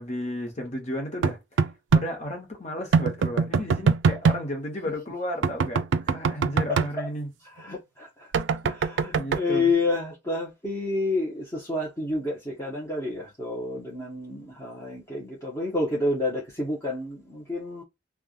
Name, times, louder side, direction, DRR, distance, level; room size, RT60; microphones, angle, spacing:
voice 1, 0.0-1.4 1.9-5.8 6.1-7.3 9.1-9.7, equal, 40° left, 1.3 m, -33 dB
sound 1, 1.2-2.1 2.9-4.4 5.4-6.9 8.3-9.4, right 5 dB, 85° right, 0.4 m, -22 dB
voice 2, 6.7-7.1 7.6-8.1 8.6-17.8, left 2 dB, 15° left, 1.0 m, -29 dB
3.4 x 2.3 x 2.4 m
head